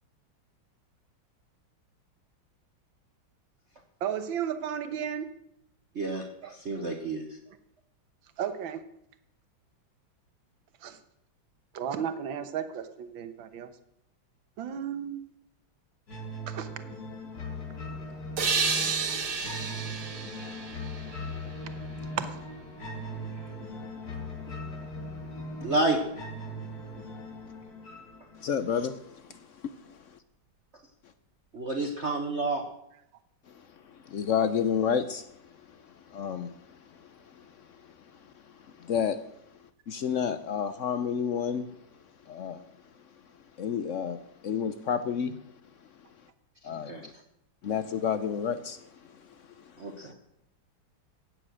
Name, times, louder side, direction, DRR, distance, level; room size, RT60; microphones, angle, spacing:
voice 1, 4.0-5.3 6.1-6.5 8.4-8.8 10.8-11.0 11.7-13.7 14.6-15.2 16.5-16.7 22.3-22.4 23.4-23.5, right 8 dB, 75° right, 10 dB, 1.8 m, -34 dB
voice 2, 5.9-7.4 25.6-26.0 31.5-32.6 46.6-47.0 49.8-50.1, right 2 dB, 40° right, 3 dB, 1.4 m, -30 dB
sound 1, 16.1-29.1, left 1 dB, 50° left, 2.7 m, -39 dB
sound 2, 18.4-21.9, right 5 dB, 55° right, 2.0 m, -31 dB
voice 3, 28.4-30.0 33.5-33.6 33.9-35.3 35.7-35.8 36.1-37.8 38.6-39.2 39.9-41.7 42.3-42.6 43.6-45.4 46.6-47.1 47.6-48.8 49.1-50.1, left 7 dB, 80° left, 12 dB, 0.6 m, -31 dB
16.0 x 9.3 x 6.3 m, 0.75 s
omnidirectional pair, 2.2 m